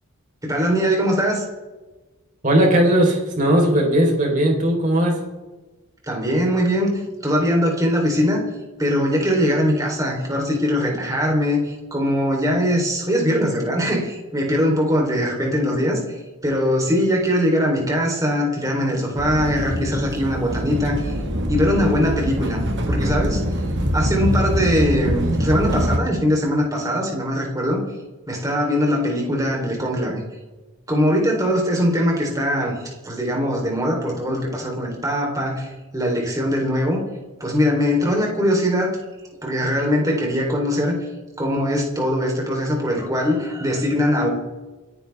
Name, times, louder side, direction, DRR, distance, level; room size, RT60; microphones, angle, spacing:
voice 1, 0.4-1.4 6.0-8.4 8.8-21.2 21.5-23.4 23.9-27.8 28.3-30.2 30.9-37.0 37.4-38.9 39.4-41.0 41.4-44.3, equal, 15° right, -1 dB, 3.8 m, -21 dB
voice 2, 2.4-5.1, right 1 dB, 35° right, 0 dB, 4.4 m, -17 dB
sound 1, 19.2-26.0, equal, 50° right, 1.8 m, -24 dB
29.0 x 10.5 x 3.6 m, 1.2 s
head